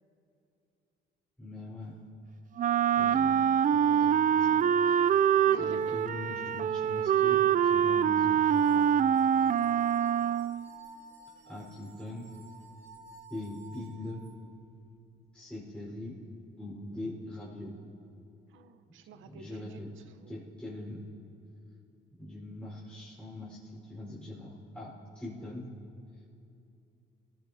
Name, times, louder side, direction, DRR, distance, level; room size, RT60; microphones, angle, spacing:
voice 1, 1.4-2.0 3.0-3.4 3.7-4.6 5.0-5.2 5.6-9.0 11.5-12.3 13.3-14.2 15.3-16.1 16.6-17.7 19.2-19.9 20.3-21.0 22.2-25.7, left 1 dB, 5° left, -7 dB, 4.4 m, -42 dB
Wind instrument woodwind instrument, 2.6-10.7, right 8 dB, 40° right, 0.4 m, -25 dB
voice 2, 5.5-6.0 10.2-10.7 18.5-20.5, right 7 dB, 80° right, 9 dB, 0.9 m, -49 dB
sound 1, 8.5-14.3, right 4 dB, 65° right, 2.3 m, -52 dB
29.0 x 17.0 x 2.8 m, 2.7 s
cardioid pair, 90°, 20 cm